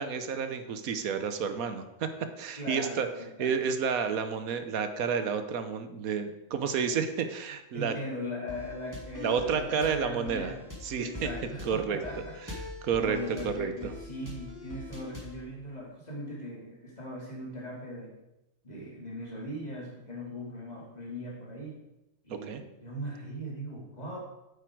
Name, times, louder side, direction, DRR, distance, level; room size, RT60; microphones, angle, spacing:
voice 1, 0.0-3.1 3.4-7.9 9.2-10.5 10.8-11.3 11.6-12.0 12.5-12.6 12.8-13.2 13.4-13.9 22.3-22.6, right 6 dB, 85° right, 9 dB, 1.3 m, -30 dB
voice 2, 2.6-3.6 7.7-10.6 11.0-12.4 13.0-18.1 18.6-21.8 22.2-24.2, left 1 dB, 30° left, -2 dB, 2.3 m, -39 dB
sound 1, 8.5-15.4, left 2 dB, 15° right, 1.9 m, -43 dB
8.7 x 8.3 x 4.6 m, 0.93 s
omnidirectional pair, 1.4 m